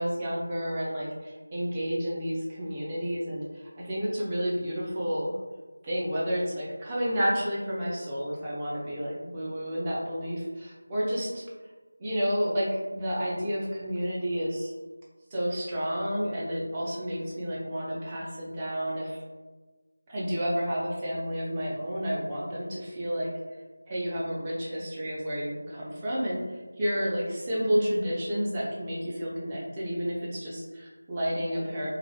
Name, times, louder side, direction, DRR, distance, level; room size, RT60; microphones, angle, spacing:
voice 1, 0.0-5.4 5.8-11.4 12.0-14.7 15.3-19.2 20.1-23.3 23.9-31.9, equal, 15° right, -7 dB, 0.4 m, -30 dB
2.4 x 2.3 x 2.3 m, 1.3 s
figure-of-eight pair, 170°, 0 cm